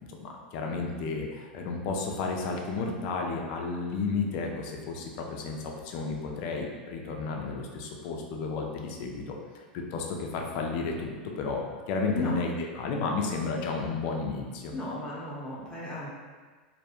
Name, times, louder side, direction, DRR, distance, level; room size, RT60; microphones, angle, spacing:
voice 1, 0.1-14.7, left 4 dB, 55° left, 1 dB, 0.5 m, -32 dB
voice 2, 14.7-16.1, left 2 dB, 15° left, -7 dB, 0.9 m, -35 dB
2.4 x 2.1 x 2.9 m, 1.4 s
hypercardioid pair, 105°, 5 cm